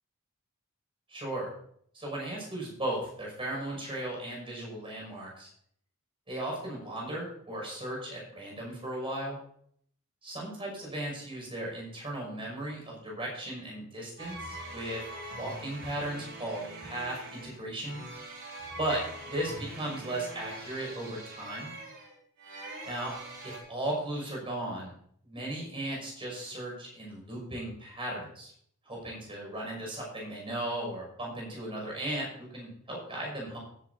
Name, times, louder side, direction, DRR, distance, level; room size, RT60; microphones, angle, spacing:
voice 1, 1.1-1.5 1.9-5.5 6.3-9.4 10.2-15.0 15.3-18.0 18.8-21.7 22.9-23.1 23.4-24.9 25.2-28.5 28.8-33.6, right 1 dB, 25° right, -2 dB, 6.2 m, -36 dB
sound 1, 14.2-23.6, right 1 dB, 55° right, 5.1 m, -43 dB
16.5 x 11.0 x 2.8 m, 0.63 s
head